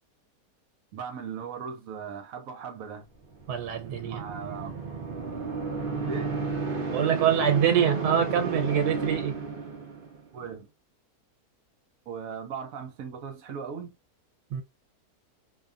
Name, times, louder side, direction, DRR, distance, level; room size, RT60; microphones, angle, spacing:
voice 1, 0.9-3.1 4.0-4.8 6.1-6.4 10.3-10.7 12.1-14.0, right 6 dB, 70° right, 0.9 m, -38 dB
sound 1, 3.3-10.3, right 4 dB, 50° right, 0.7 m, -32 dB
voice 2, 3.5-4.2 6.9-9.4 14.5-14.6, right 8 dB, 85° right, 1.2 m, -25 dB
2.8 x 2.2 x 2.4 m
omnidirectional pair, 1.7 m